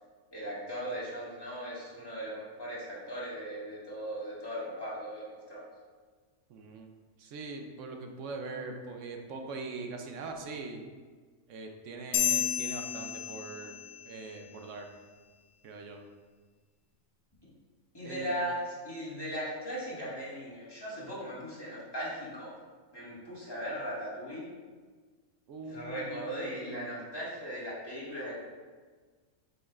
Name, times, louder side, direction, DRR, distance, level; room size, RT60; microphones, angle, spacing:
voice 1, 0.3-5.7 17.9-22.5 22.9-24.5 25.6-28.4, equal, 15° left, -8 dB, 1.9 m, -38 dB
voice 2, 6.5-6.9 7.2-10.9 11.5-14.9 15.6-16.0 18.0-18.3 25.5-27.0, right 3 dB, 65° right, 4 dB, 1.0 m, -42 dB
sound 1, 12.1-14.0, left 9 dB, 65° left, 0.6 m, -31 dB
7.6 x 5.4 x 2.5 m, 1.5 s
omnidirectional pair, 1.5 m